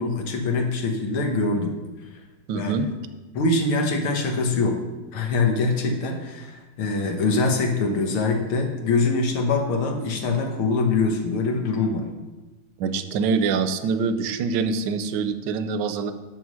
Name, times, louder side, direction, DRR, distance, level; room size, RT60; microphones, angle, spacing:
voice 1, 0.0-1.8 2.5-2.7 3.3-4.8 5.1-12.1, left 3 dB, 90° left, 3 dB, 2.2 m, -23 dB
voice 2, 2.5-2.9 12.8-16.1, right 5 dB, 70° right, 10 dB, 1.2 m, -25 dB
8.1 x 7.1 x 6.3 m, 1.2 s
omnidirectional pair, 2.3 m